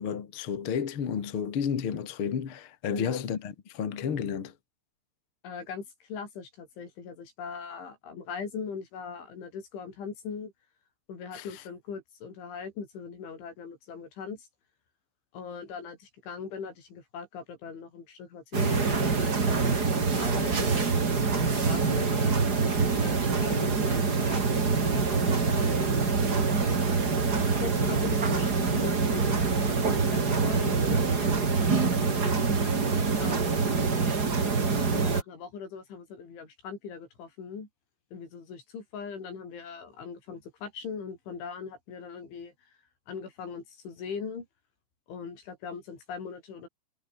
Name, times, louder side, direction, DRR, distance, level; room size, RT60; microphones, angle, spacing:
voice 1, 0.0-4.5 11.3-11.5, left 7 dB, 50° left, 1.6 m, -31 dB
voice 2, 2.9-3.3 5.4-10.5 11.1-14.5 15.3-22.4 22.9-26.3 27.6-32.3 33.2-33.9 34.9-37.7 38.1-42.5 43.1-44.5 45.1-46.7, left 6 dB, 65° left, 8.2 m, -40 dB
sound 1, 18.5-35.2, right 4 dB, 30° right, 2.0 m, -25 dB
omnidirectional pair, 5.8 m